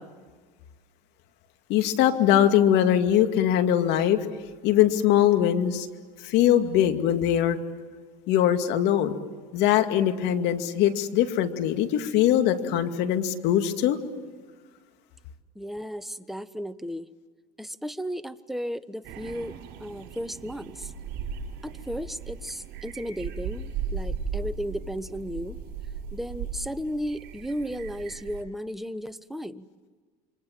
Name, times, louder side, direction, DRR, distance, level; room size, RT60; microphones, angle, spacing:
voice 1, 1.7-4.2 4.6-5.9 6.2-7.6 8.3-9.1 9.5-14.0, left 11 dB, 65° left, 7 dB, 2.4 m, -22 dB
voice 2, 15.6-17.1 17.6-20.9 21.6-25.6 26.1-29.6, equal, ahead, 12 dB, 1.1 m, -34 dB
sound 1, 19.0-28.4, right 6 dB, 60° right, 7.3 m, -37 dB
28.5 x 25.5 x 7.5 m, 1.5 s
supercardioid pair, 95°, 19 cm